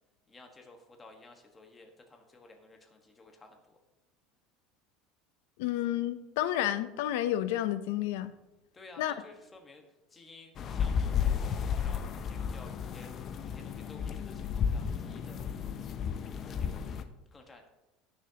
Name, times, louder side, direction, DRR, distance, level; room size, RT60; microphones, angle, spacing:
voice 1, 0.3-3.8 8.7-9.8 10.1-11.4 11.7-13.2 13.5-15.5 16.3-16.9 17.3-17.7, left 2 dB, 15° left, 1.4 m, -54 dB
voice 2, 5.6-8.3 9.0-9.1, left 13 dB, 80° left, 0.6 m, -30 dB
sound 1, 10.6-17.0, left 7 dB, 35° left, 0.6 m, -33 dB
17.0 x 6.5 x 2.9 m
cardioid pair, 145°, 0 cm